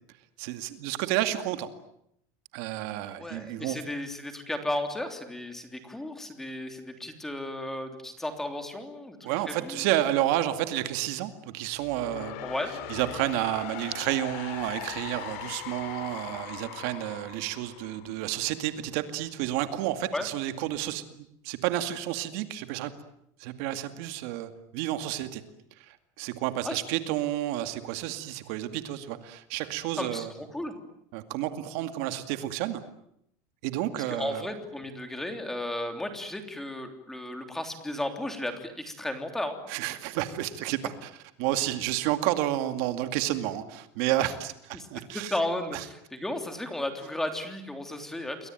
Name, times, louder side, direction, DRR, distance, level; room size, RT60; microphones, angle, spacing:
voice 1, 0.4-1.7 2.5-3.8 9.2-12.4 12.9-22.9 23.4-25.4 25.9-30.3 31.1-32.8 33.6-34.5 39.7-41.1 41.4-45.3 45.7-45.8, right 13 dB, 60° right, 9 dB, 2.3 m, -30 dB
voice 2, 3.1-9.9 12.4-12.7 20.1-20.3 26.6-26.8 30.0-30.7 34.1-39.6 44.7-44.9 45.1-48.5, left 1 dB, 5° left, 6 dB, 3.3 m, -34 dB
sound 1, 11.8-18.7, left 11 dB, 65° left, 4.0 m, -40 dB
29.0 x 22.5 x 9.1 m, 0.75 s
cardioid pair, 170°, 8 cm